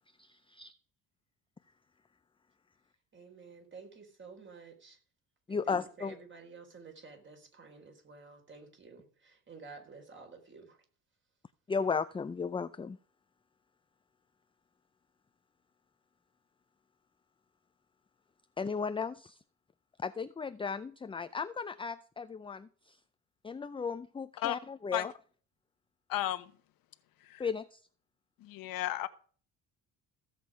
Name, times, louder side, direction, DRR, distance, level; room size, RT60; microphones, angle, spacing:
voice 1, 0.2-0.7 5.5-6.1 11.7-13.0 18.6-19.4 20.0-23.0 23.4-25.1 27.4-27.8, left 5 dB, 15° left, 0.5 m, -35 dB
voice 2, 3.1-5.0 5.5-10.8, right 4 dB, 30° right, 4.3 m, -52 dB
voice 3, 26.1-26.5 27.2-27.4 28.4-29.1, left 14 dB, 70° left, 1.1 m, -34 dB
15.5 x 7.6 x 5.0 m
cardioid pair, 105°, 36 cm